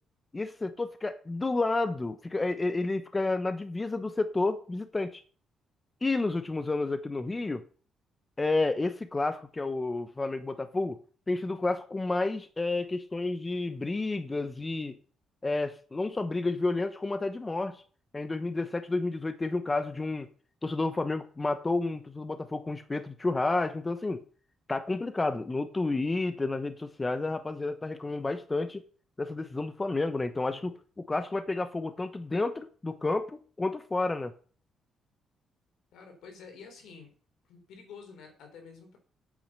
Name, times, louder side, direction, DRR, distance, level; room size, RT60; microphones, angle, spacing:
voice 1, 0.3-5.2 6.0-7.6 8.4-11.0 11.3-15.0 15.4-17.8 18.1-20.3 20.6-24.2 24.7-28.8 29.2-34.3, left 2 dB, 20° left, 11 dB, 1.0 m, -30 dB
voice 2, 35.9-37.1 37.5-39.0, left 5 dB, 80° left, 5 dB, 4.1 m, -49 dB
8.8 x 8.7 x 6.7 m, 0.42 s
cardioid pair, 90°, 0 cm